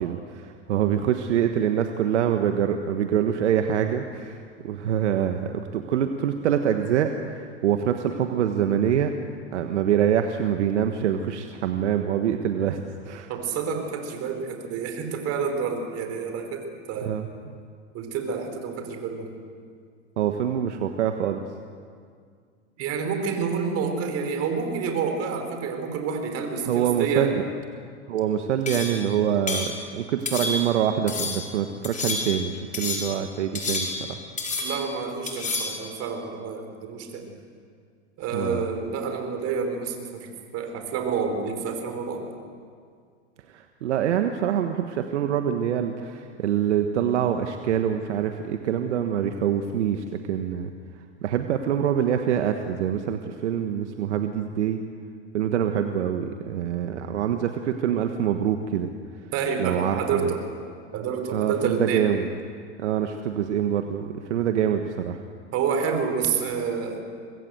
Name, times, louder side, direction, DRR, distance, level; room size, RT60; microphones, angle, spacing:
voice 1, 0.0-9.1 9.5-13.3 17.0-17.5 20.2-21.4 26.6-27.4 28.1-34.2 38.3-38.7 43.5-50.7 51.2-54.8 55.3-58.9 59.6-60.3 61.3-62.3 62.8-65.2, right 9 dB, 75° right, 6 dB, 1.5 m, -25 dB
voice 2, 13.3-17.1 17.9-19.3 22.8-27.3 34.6-37.3 38.2-40.3 40.5-42.2 59.3-60.4 60.9-62.1 65.5-67.0, right 5 dB, 45° right, 5 dB, 4.9 m, -28 dB
sound 1, 28.7-29.0 29.5-29.7 30.3-30.8 31.1-31.5 31.8-32.4 32.7-33.2 33.5-34.1 34.4-34.9 35.3-35.8, left 3 dB, 20° left, 5.2 m, -29 dB
25.5 x 20.5 x 8.0 m, 2.1 s
hypercardioid pair, 105°, 35 cm